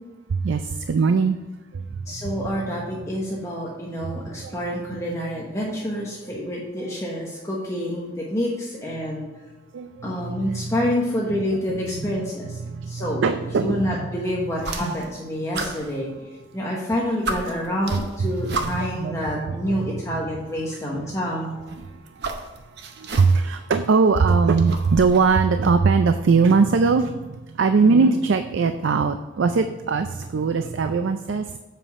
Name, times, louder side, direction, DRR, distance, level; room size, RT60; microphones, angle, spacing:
voice 1, 0.3-1.4 1.7-2.6 3.9-4.8 6.3-6.4 9.7-10.7 12.6-13.8 18.4-20.3 20.9-21.2 21.8-22.2 22.9-31.6, right 4 dB, 80° right, 9 dB, 0.4 m, -21 dB
voice 2, 2.1-9.2 10.0-13.2 13.6-16.3 16.5-21.6 27.8-28.2, equal, 15° left, -4 dB, 1.1 m, -27 dB
sound 1, 14.6-15.2 15.5-16.6 16.9-17.0 17.2-19.0 20.1-20.2 21.5-23.6 23.9-25.4, right 3 dB, 60° right, 0.8 m, -32 dB
7.6 x 5.3 x 4.7 m, 1.2 s
head